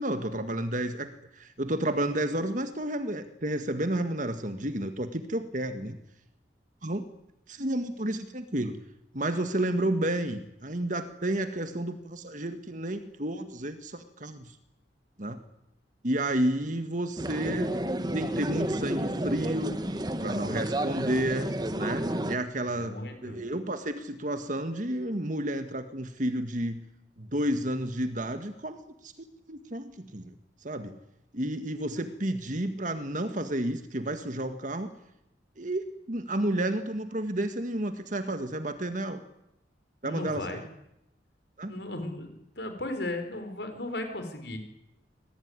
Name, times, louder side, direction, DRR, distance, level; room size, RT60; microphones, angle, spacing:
voice 1, 0.0-6.0 6.8-7.0 7.5-8.8 9.1-14.6 15.2-15.4 16.0-17.7 18.1-19.8 20.2-23.0 23.2-26.8 27.2-28.8 29.0-29.1 29.5-30.3 30.6-31.0 31.3-34.9 35.6-39.2 40.0-40.6 41.6-41.7, right 1 dB, 45° right, 8 dB, 1.8 m, -31 dB
sound 1, 17.2-22.4, right 1 dB, 20° right, 1.5 m, -31 dB
voice 2, 22.7-23.4 40.0-40.6 41.7-44.6, left 1 dB, 65° left, 7 dB, 4.7 m, -36 dB
26.0 x 20.0 x 9.8 m, 0.83 s
head